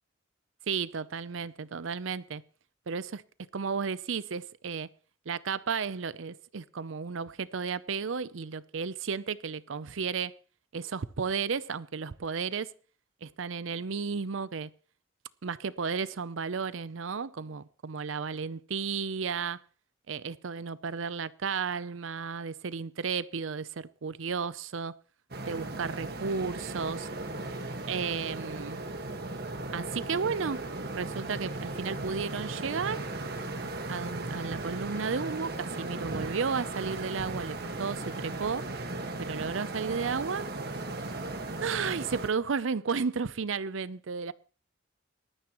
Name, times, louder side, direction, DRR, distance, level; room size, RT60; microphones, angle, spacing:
voice 1, 0.7-2.4 2.9-3.2 3.5-4.9 5.3-10.3 10.7-12.7 13.2-14.7 15.4-19.6 20.1-24.9 25.4-27.1 27.9-28.8 29.7-30.6 31.0-33.0 33.9-38.7 39.2-40.5 41.6-44.3, right 5 dB, 75° right, 0.6 m, -33 dB
sound 1, 25.3-42.3, right 2 dB, 50° right, 1.7 m, -37 dB
19.0 x 13.0 x 3.1 m
head